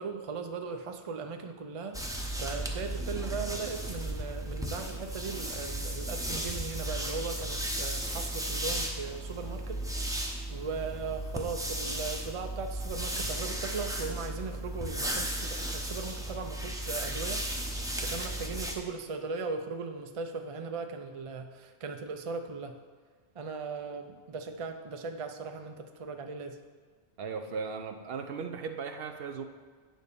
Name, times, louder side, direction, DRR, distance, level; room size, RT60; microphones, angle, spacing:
voice 1, 0.0-17.5 18.0-22.8 23.3-26.6, right 4 dB, 40° right, 5 dB, 0.5 m, -38 dB
sound 1, 1.9-18.8, right 1 dB, 5° right, 0.7 m, -35 dB
voice 2, 27.2-29.4, right 5 dB, 65° right, 7 dB, 0.8 m, -37 dB
9.0 x 4.1 x 6.7 m, 1.5 s
omnidirectional pair, 1.1 m